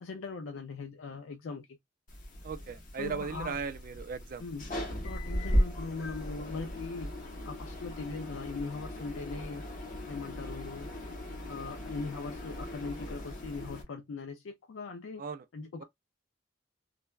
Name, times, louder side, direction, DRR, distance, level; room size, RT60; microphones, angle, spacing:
voice 1, 0.0-1.8 2.9-3.6 4.4-4.7 5.0-7.1 7.4-9.6 10.1-10.9 11.5-15.2 15.5-15.8, left 4 dB, 85° left, 0.4 m, -40 dB
sound 1, 2.1-13.8, equal, 45° left, 1.0 m, -36 dB
voice 2, 2.4-4.4 15.2-15.4, right 5 dB, 45° right, 0.4 m, -37 dB
3.2 x 2.1 x 2.3 m
head